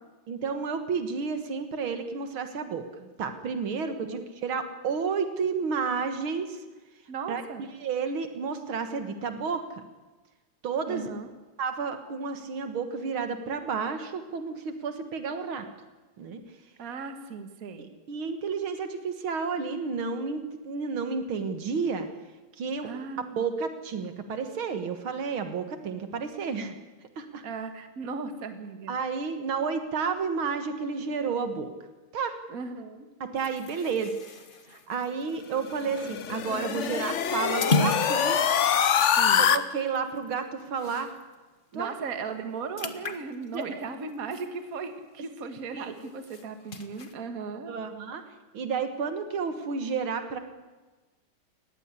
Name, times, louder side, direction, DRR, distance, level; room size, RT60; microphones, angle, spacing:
voice 1, 0.3-6.6 7.3-7.4 7.8-9.8 10.6-11.1 11.6-15.7 16.2-16.4 17.8-22.1 22.6-22.9 23.4-26.8 27.2-27.4 28.9-31.7 32.1-32.3 33.2-34.1 34.7-38.4 39.4-41.1 41.7-41.9 43.5-43.8 45.7-46.0 47.7-48.2 48.5-50.4, right 5 dB, 75° right, 8 dB, 2.4 m, -31 dB
voice 2, 7.1-7.6 10.9-11.3 16.8-17.9 22.8-23.4 27.4-29.0 32.5-33.1 36.0-36.1 39.2-39.5 41.7-47.8, right 5 dB, 45° right, 8 dB, 1.9 m, -37 dB
sound 1, 33.4-41.3 41.7-41.9 42.2-45.1 45.5-47.1, left 2 dB, 30° left, 1.0 m, -36 dB
sound 2, 35.6-39.6, left 8 dB, 60° left, 0.7 m, -24 dB
19.0 x 15.0 x 9.8 m, 1.2 s
omnidirectional pair, 2.3 m